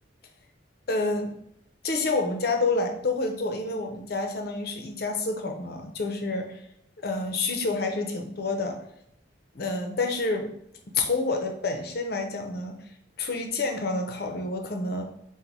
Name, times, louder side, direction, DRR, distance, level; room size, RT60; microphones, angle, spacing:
voice 1, 0.9-1.3 1.8-6.5 7.0-8.8 9.5-10.5 10.9-12.8 13.2-15.0, left 3 dB, 60° left, 4 dB, 0.6 m, -28 dB
4.0 x 2.2 x 4.5 m, 0.75 s
head